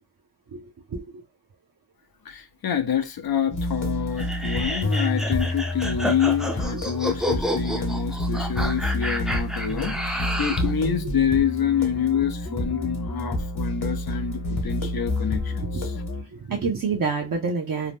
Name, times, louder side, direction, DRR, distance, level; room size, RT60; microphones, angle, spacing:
voice 1, 0.5-1.0 6.7-6.8 8.3-8.4 14.8-14.9 15.7-15.9 16.3-17.9, right 5 dB, 60° right, 0.6 m, -28 dB
voice 2, 2.3-15.9, left 8 dB, 70° left, 0.5 m, -27 dB
sound 1, 3.5-16.2, left 1 dB, 55° left, 1.1 m, -28 dB
sound 2, 4.2-10.7, equal, ahead, 0.4 m, -30 dB
2.7 x 2.0 x 3.4 m
wide cardioid pair, 50°, 38 cm